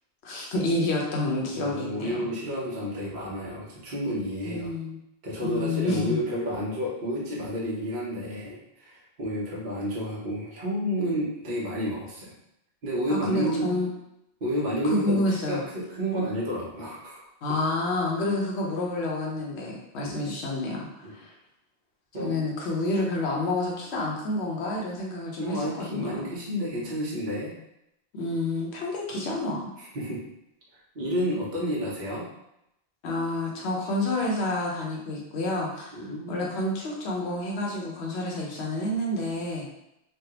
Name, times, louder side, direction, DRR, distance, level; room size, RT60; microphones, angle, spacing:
voice 1, 0.2-2.3 4.4-5.0 5.4-6.2 13.1-13.9 14.8-15.6 17.4-21.3 22.2-25.6 25.9-26.2 28.1-29.7 33.0-36.0 36.3-39.7, left 2 dB, 80° left, -2 dB, 1.0 m, -29 dB
voice 2, 1.5-4.7 5.2-12.3 12.8-13.7 14.4-15.2 15.5-17.3 20.0-20.3 21.0-21.1 22.1-22.3 25.4-27.5 29.8-30.2 30.9-32.3 35.9-36.5, equal, 50° right, -6 dB, 0.9 m, -30 dB
3.4 x 2.3 x 2.8 m, 0.83 s
omnidirectional pair, 1.1 m